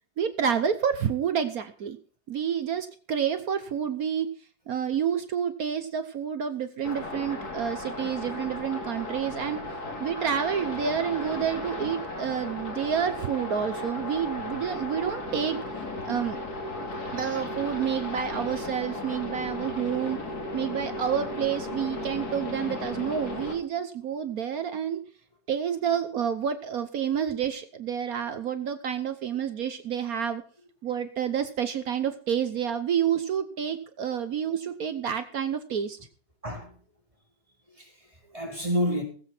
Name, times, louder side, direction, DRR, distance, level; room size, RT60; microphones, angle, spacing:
voice 1, 0.2-2.0 2.3-4.3 4.7-9.6 10.0-15.6 16.0-16.4 17.1-20.2 20.5-25.0 25.5-30.4 30.8-36.0, right 8 dB, 65° right, 1.3 m, -29 dB
sound 1, 6.8-23.5, left 2 dB, 65° left, 3.2 m, -35 dB
voice 2, 36.4-36.8 37.7-39.0, equal, 20° right, 3.9 m, -30 dB
20.0 x 7.9 x 4.5 m
omnidirectional pair, 1.8 m